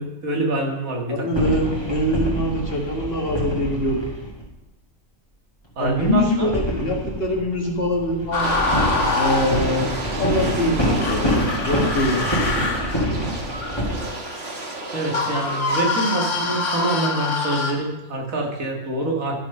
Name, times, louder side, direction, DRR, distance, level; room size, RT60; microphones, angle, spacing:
voice 1, 0.0-1.5 5.8-6.5 14.9-19.3, right 2 dB, 85° right, 0 dB, 2.2 m, -25 dB
voice 2, 1.1-4.0 5.8-8.6 9.2-12.4, left 1 dB, 45° left, 0 dB, 1.8 m, -24 dB
sound 1, 1.3-4.5 5.8-13.9, equal, 20° left, 2.7 m, -26 dB
sound 2, 8.3-10.0 11.0-17.7, left 3 dB, 65° left, 1.5 m, -25 dB
sound 3, 8.4-16.6 17.0-17.1, right 2 dB, 50° right, 1.5 m, -31 dB
12.0 x 6.3 x 5.4 m, 0.96 s
omnidirectional pair, 1.4 m